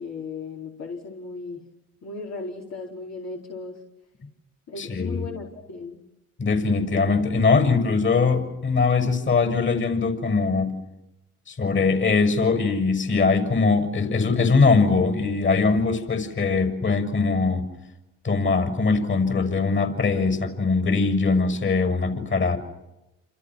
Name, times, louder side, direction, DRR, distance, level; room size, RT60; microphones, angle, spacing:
voice 1, 0.0-1.7 2.0-3.8 4.7-6.0, left 3 dB, 60° left, -2 dB, 4.6 m, -36 dB
voice 2, 4.8-5.3 6.4-10.7 11.5-17.7 18.2-22.6, left 4 dB, 40° left, 8 dB, 6.7 m, -21 dB
29.0 x 28.5 x 6.3 m, 0.92 s
cardioid pair, 90°, 30 cm